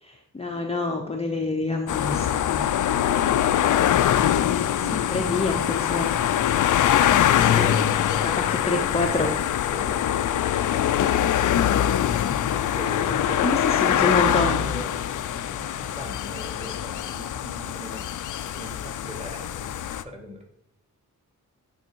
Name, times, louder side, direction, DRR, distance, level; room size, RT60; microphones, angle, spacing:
voice 1, 0.0-2.7 5.1-6.1 7.4-7.7 8.2-9.3 13.4-14.6, left 2 dB, 20° left, 2 dB, 0.6 m, -27 dB
sound 1, 1.9-20.0, left 10 dB, 65° left, 0.4 m, -23 dB
voice 2, 4.8-5.4 7.5-8.3 9.7-10.4 12.5-18.1 18.5-19.8 20.0-20.4, equal, 20° right, 2 dB, 1.8 m, -39 dB
8.8 x 3.5 x 4.5 m, 0.74 s
cardioid pair, 90°, 34 cm